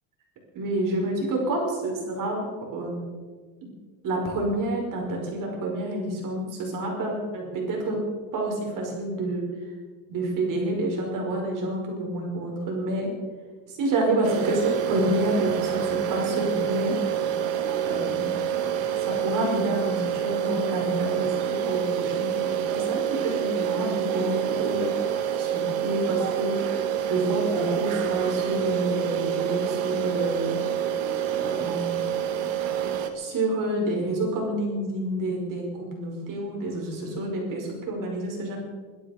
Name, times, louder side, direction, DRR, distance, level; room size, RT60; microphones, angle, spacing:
voice 1, 0.5-2.4 2.7-3.0 4.0-8.0 8.3-9.5 10.1-13.1 13.7-17.0 17.8-18.4 19.0-30.9 31.3-32.0 33.1-38.6, right 1 dB, 45° right, -1 dB, 5.4 m, -28 dB
sound 1, 14.2-33.1, right 9 dB, 85° right, 2.1 m, -27 dB
21.0 x 13.0 x 5.1 m, 1.5 s
cardioid pair, 150°, 44 cm